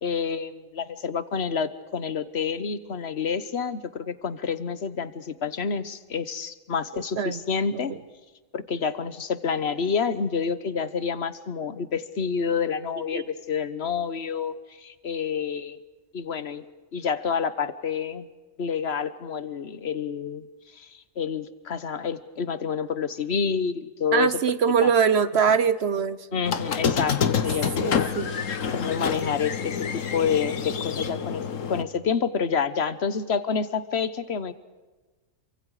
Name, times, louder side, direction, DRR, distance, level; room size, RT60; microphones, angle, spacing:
voice 1, 0.0-7.9 8.5-15.8 16.1-16.6 16.9-18.3 18.6-20.5 20.7-20.9 21.2-24.4 24.8-24.9 25.5-25.6 26.3-34.5, left 6 dB, 50° left, 14 dB, 1.3 m, -28 dB
voice 2, 6.9-7.4 7.7-7.8 13.1-13.2 24.1-26.4 27.8-28.3, right 6 dB, 55° right, 14 dB, 1.0 m, -23 dB
Squeak, 26.5-31.8, left 6 dB, 70° left, 1.5 m, -27 dB
27.5 x 24.5 x 4.9 m, 1.3 s
omnidirectional pair, 1.4 m